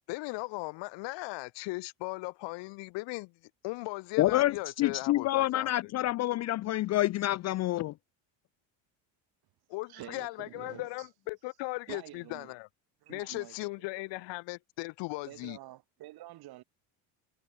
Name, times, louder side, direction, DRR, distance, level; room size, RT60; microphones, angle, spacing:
voice 1, 0.1-3.3 3.6-5.9 9.7-12.7 13.1-15.6, left 24 dB, 70° left, 3.2 m, -38 dB
voice 2, 4.2-7.9, left 15 dB, 40° left, 0.5 m, -28 dB
voice 3, 9.9-11.1 11.9-12.5 13.0-13.6 14.1-14.2 15.3-16.6, right 16 dB, 55° right, 5.1 m, -48 dB
cardioid pair, 145°, 44 cm